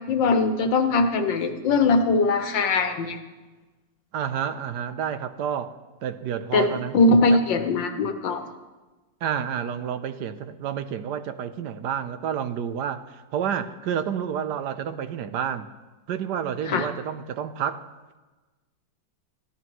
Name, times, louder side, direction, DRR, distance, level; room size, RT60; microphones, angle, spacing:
voice 1, 0.1-3.2 6.5-6.7 6.9-8.4 16.7-16.9, left 3 dB, 80° left, 6 dB, 1.8 m, -21 dB
voice 2, 4.1-7.0 7.3-7.4 9.2-15.7 16.1-17.8, right 8 dB, 70° right, 11 dB, 1.2 m, -30 dB
22.0 x 15.0 x 3.1 m, 1.2 s
omnidirectional pair, 2.0 m